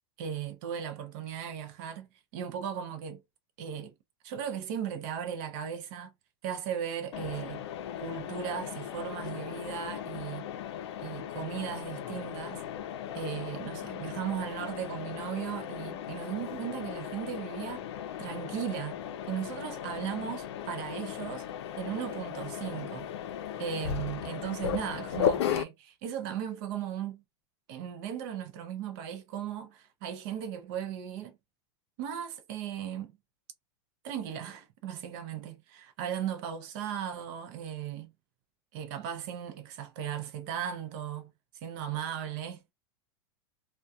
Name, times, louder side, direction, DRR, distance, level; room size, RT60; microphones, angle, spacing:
voice 1, 0.2-3.2 3.6-3.9 4.2-6.1 6.4-7.6 8.0-10.5 11.0-12.6 13.1-17.9 18.2-19.0 19.3-21.5 21.8-23.1 23.6-27.2 27.7-31.3 32.0-33.2 34.0-38.1 38.7-41.3 41.6-42.6, right 9 dB, 45° right, 0.6 m, -37 dB
Mechanisms, 7.1-25.6, left 9 dB, 70° left, 0.5 m, -36 dB
2.3 x 2.2 x 2.6 m
supercardioid pair, 160°, 14 cm